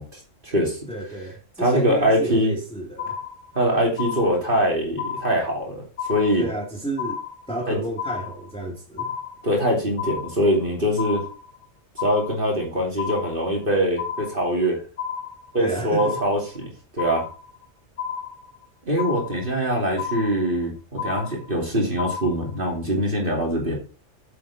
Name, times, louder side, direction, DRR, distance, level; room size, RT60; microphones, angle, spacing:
voice 1, 0.0-0.8 1.6-2.5 3.5-5.8 6.1-6.5 7.7-7.8 9.4-11.2 12.0-14.8 15.5-17.2 18.9-23.7, equal, 45° right, 3.0 m, -23 dB
voice 2, 0.9-3.2 6.4-7.2 7.5-9.1 15.6-16.2, right 1 dB, 5° left, 2.4 m, -31 dB
sound 1, 3.0-3.6 4.0-4.6 5.0-5.6 6.0-6.6 7.0-7.6 8.0-8.6 9.0-9.6 10.0-10.6 11.0-11.6 12.0-12.6 13.0-13.6 14.0-14.6 15.0-15.6 16.0-16.6 17.0-17.6 18.0-18.6 19.0-19.6 20.0-20.6 21.0-21.6 22.0-22.6, left 7 dB, 70° left, 2.3 m, -32 dB
8.7 x 7.6 x 4.2 m
omnidirectional pair, 1.3 m